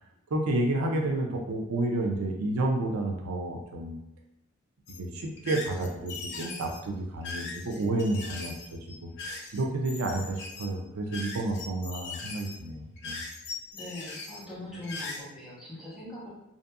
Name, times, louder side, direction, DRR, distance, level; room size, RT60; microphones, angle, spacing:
voice 1, 0.3-4.0 5.0-13.2, right 2 dB, 85° right, 2 dB, 0.4 m, -30 dB
sound 1, 4.9-15.2, left 3 dB, 55° left, 0.5 m, -40 dB
voice 2, 13.7-16.3, left 1 dB, ahead, -9 dB, 0.9 m, -41 dB
2.6 x 2.6 x 2.3 m, 0.85 s
head